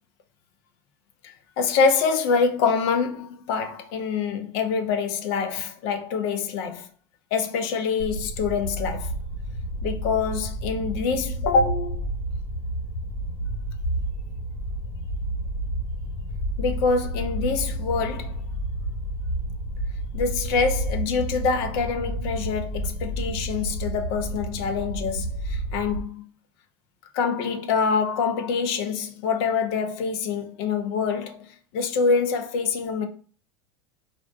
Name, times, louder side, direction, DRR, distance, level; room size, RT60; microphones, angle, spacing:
voice 1, 1.6-6.9 7.3-9.1 9.8-12.0 16.6-18.3 20.1-26.2 27.1-31.5 31.7-33.1, left 5 dB, 55° left, 0.5 m, -25 dB
sound 1, 8.0-26.0, right 1 dB, 75° left, 1.3 m, -30 dB
2.5 x 2.1 x 2.5 m
figure-of-eight pair, 80°, 15 cm